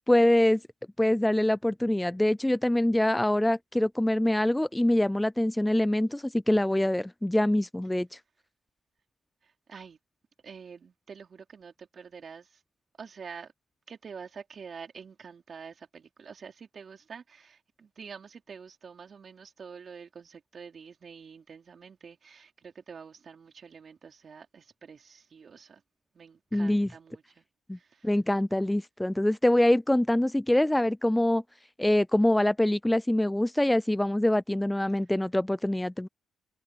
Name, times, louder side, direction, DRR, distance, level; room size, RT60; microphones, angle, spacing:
voice 1, 0.1-0.6 1.0-8.2 26.5-26.9 27.7-27.8 28.0-31.4 31.8-36.1, left 1 dB, 5° left, 0.3 m, -24 dB
voice 2, 9.4-10.0 10.4-12.6 13.0-13.5 13.9-25.8 26.1-27.4 27.7-28.1 34.9-35.0, right 6 dB, 45° right, 3.9 m, -47 dB
cardioid pair, 90°, 0 cm